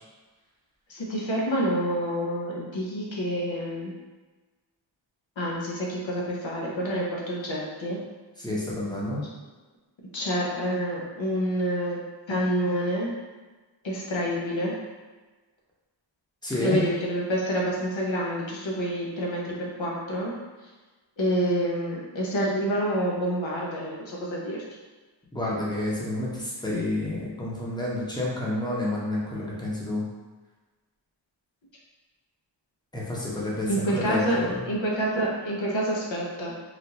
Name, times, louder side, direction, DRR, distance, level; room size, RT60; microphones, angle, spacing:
voice 1, 0.9-3.9 5.4-8.0 10.1-12.0 12.3-13.1 13.8-14.8 16.6-20.3 21.2-24.6 33.7-34.4 34.7-36.5, equal, 75° left, -3 dB, 0.8 m, -28 dB
voice 2, 8.4-9.2 16.4-16.8 25.3-30.1 32.9-34.7, left 1 dB, 10° left, -6 dB, 0.8 m, -29 dB
3.4 x 2.4 x 2.8 m, 1.3 s
wide cardioid pair, 80°, 46 cm